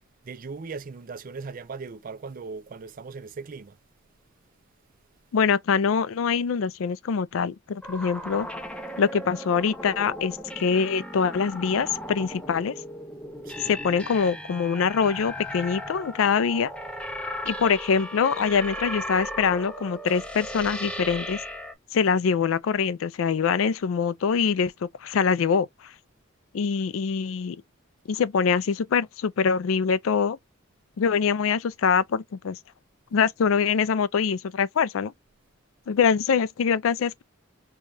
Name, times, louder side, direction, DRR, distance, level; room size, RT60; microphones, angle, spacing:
voice 1, 0.2-3.8 13.4-13.9, right 4 dB, 45° right, 0.4 m, -38 dB
voice 2, 5.3-8.5 9.0-12.7 13.6-16.7 17.5-21.4 21.9-25.9 26.5-27.6 28.1-30.4 31.0-32.6 33.1-35.1 35.9-37.2, left 6 dB, 80° left, 0.4 m, -24 dB
sound 1, 7.8-21.7, equal, 5° left, 0.5 m, -36 dB
4.6 x 2.3 x 2.5 m
head